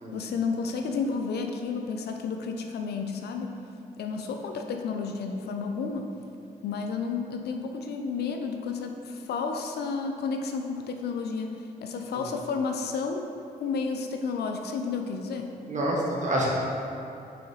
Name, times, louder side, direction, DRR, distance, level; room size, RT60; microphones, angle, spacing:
voice 1, 0.1-3.5 4.0-6.1 6.6-13.2 13.6-15.5, left 5 dB, 80° left, 4 dB, 0.5 m, -31 dB
voice 2, 15.7-16.5, right 1 dB, 50° right, -4 dB, 1.4 m, -27 dB
4.8 x 4.0 x 4.9 m, 2.6 s
cardioid pair, 70°, 17 cm